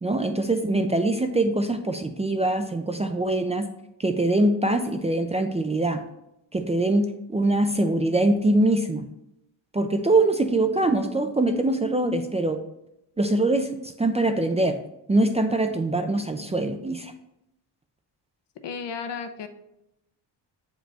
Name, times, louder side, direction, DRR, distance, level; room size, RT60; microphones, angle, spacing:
voice 1, 0.0-3.7 4.0-6.0 6.5-9.1 9.7-12.6 13.2-13.7 14.0-14.8 15.1-17.1, right 2 dB, 15° right, 6 dB, 0.4 m, -23 dB
voice 2, 18.6-19.5, left 6 dB, 70° left, 8 dB, 0.8 m, -33 dB
7.5 x 5.1 x 3.4 m, 0.83 s
cardioid pair, 120°, 43 cm